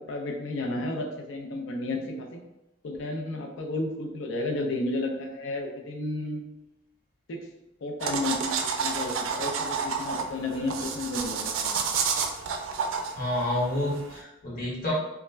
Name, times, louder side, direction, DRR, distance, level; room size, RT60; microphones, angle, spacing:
voice 1, 0.1-2.4 2.8-6.4 7.3-7.4 7.8-8.4 8.8-11.9, left 2 dB, 70° left, 2 dB, 0.4 m, -32 dB
sound 1, 8.0-14.2, right 5 dB, 80° right, 0.3 m, -30 dB
voice 2, 13.1-14.9, left 1 dB, 50° left, -7 dB, 1.1 m, -29 dB
2.3 x 2.1 x 3.2 m, 0.91 s
head